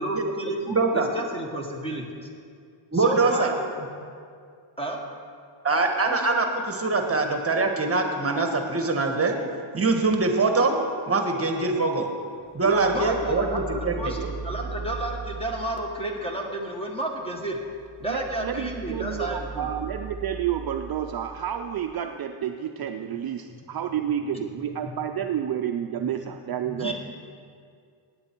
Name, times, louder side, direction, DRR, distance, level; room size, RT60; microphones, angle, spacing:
voice 1, 0.0-2.0 2.9-3.9 4.8-5.0 12.9-17.6 18.0-19.7 24.3-24.4 26.6-26.9, right 1 dB, 10° left, 0 dB, 1.4 m, -31 dB
voice 2, 0.7-1.1 2.9-3.5 5.6-9.4 9.7-10.8 11.1-12.1 12.5-14.1, right 3 dB, 30° right, 4 dB, 1.2 m, -23 dB
sound 1, 12.5-16.2 17.5-21.9, right 5 dB, 5° right, 1.2 m, -38 dB
voice 3, 12.6-13.0 13.5-13.6 14.2-14.3 18.0-26.9, right 9 dB, 50° right, 5 dB, 0.5 m, -30 dB
17.5 x 8.6 x 4.5 m, 2.2 s
wide cardioid pair, 150°, 47 cm